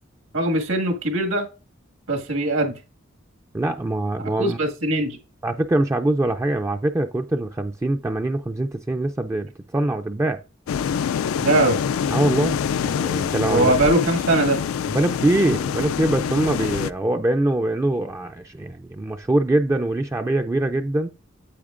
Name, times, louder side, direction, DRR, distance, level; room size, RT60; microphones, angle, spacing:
voice 1, 0.3-1.5 2.1-2.8 4.2-5.2 11.4-11.8 13.5-14.6, right 2 dB, 75° right, 1.8 m, -21 dB
voice 2, 3.5-4.6 5.4-10.4 12.1-12.6 12.8-13.7 14.9-21.1, right 1 dB, 15° right, 0.3 m, -23 dB
sound 1, 10.7-16.9, left 7 dB, 90° left, 0.3 m, -25 dB
8.5 x 8.5 x 2.5 m
head